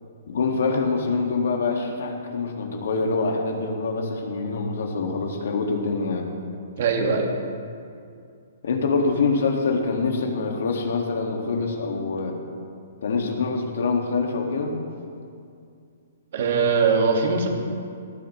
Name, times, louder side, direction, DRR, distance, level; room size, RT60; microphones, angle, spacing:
voice 1, 0.3-6.3 8.6-12.4 13.0-14.8, left 4 dB, 70° left, 2 dB, 1.9 m, -25 dB
voice 2, 6.8-7.3 16.3-17.5, right 5 dB, 55° right, 2 dB, 2.0 m, -21 dB
19.0 x 11.0 x 3.2 m, 2.4 s
hypercardioid pair, 160°, 0 cm